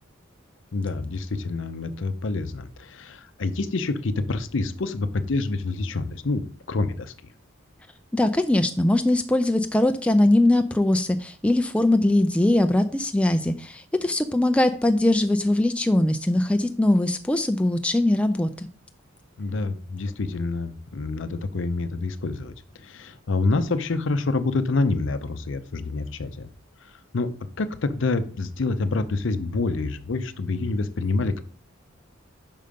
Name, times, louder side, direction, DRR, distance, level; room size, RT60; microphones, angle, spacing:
voice 1, 0.7-7.1 19.4-26.5 26.8-27.3 27.6-31.4, left 3 dB, 65° left, 11 dB, 0.6 m, -27 dB
voice 2, 8.1-18.7, left 1 dB, 5° left, 7 dB, 0.3 m, -21 dB
5.5 x 5.1 x 5.1 m, 0.43 s
head